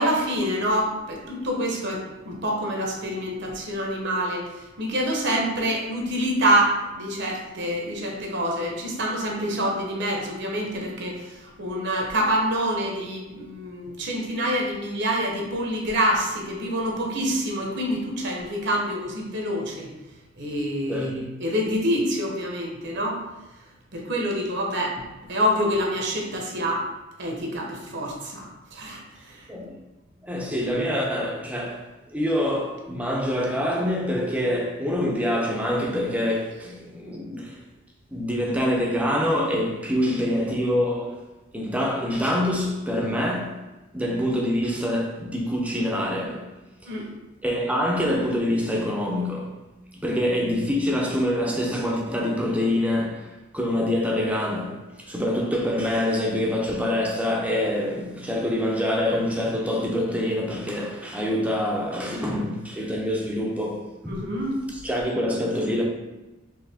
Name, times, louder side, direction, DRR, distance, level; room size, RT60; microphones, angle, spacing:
voice 1, 0.0-19.9 20.4-23.2 23.9-26.9 27.2-29.5 30.3-30.4 46.9-47.0 64.1-64.6, equal, 55° right, 0.9 m, -26 dB
voice 2, 30.2-31.8 32.1-37.6 38.1-41.2 41.5-43.6 43.9-46.5 46.8-46.9 47.4-49.5 49.9-53.3 53.5-64.3 64.8-65.9, left 1 dB, 5° right, 0.6 m, -25 dB
4.7 x 3.2 x 3.5 m
head